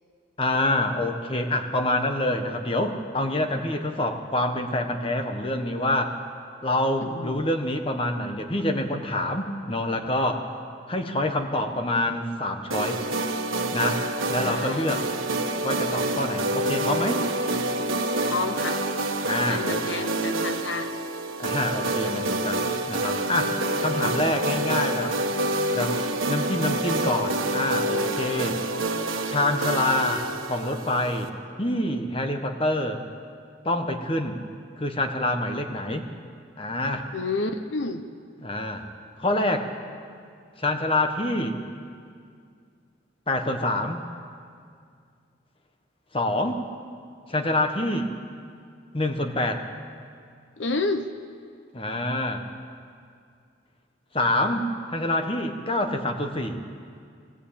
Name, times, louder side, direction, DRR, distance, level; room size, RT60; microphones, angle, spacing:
voice 1, 0.4-6.2 6.6-10.5 10.9-13.0 13.7-14.0 14.3-15.0 15.6-17.2 19.2-19.8 21.4-25.2 25.7-26.0 26.3-28.6 29.3-31.3 31.6-33.0 33.6-34.4 34.8-36.1 36.6-37.1 38.4-38.8 39.2-39.7 40.6-41.6 43.3-44.0 46.1-46.6 47.3-48.1 48.9-49.6 51.7-52.4 54.1-54.7 54.9-56.6, left 1 dB, 25° left, 5 dB, 1.3 m, -26 dB
voice 2, 7.0-7.4 14.4-15.0 18.2-18.8 19.5-20.9 37.1-38.0 50.6-51.1, left 3 dB, 70° left, 8 dB, 0.9 m, -30 dB
sound 1, 12.7-31.3, right 2 dB, 90° right, 1.5 m, -27 dB
21.5 x 15.5 x 8.7 m, 2.3 s
head